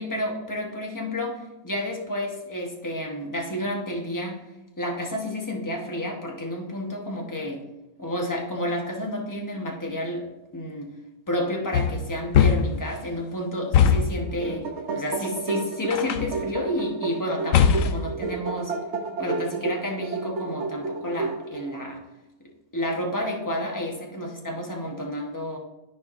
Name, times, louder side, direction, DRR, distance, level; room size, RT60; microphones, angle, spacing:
voice 1, 0.0-4.4 4.8-7.6 8.0-10.3 10.5-10.9 11.3-14.7 14.9-18.7 19.2-22.0 22.4-25.6, left 1 dB, 15° left, 0 dB, 0.9 m, -30 dB
sound 1, 11.7-12.9 13.7-14.3 15.9-16.4 17.5-18.1, left 7 dB, 70° left, 0.8 m, -20 dB
sound 2, 14.2-21.8, right 4 dB, 55° right, 1.0 m, -31 dB
13.5 x 4.6 x 2.5 m, 1.0 s
omnidirectional pair, 1.7 m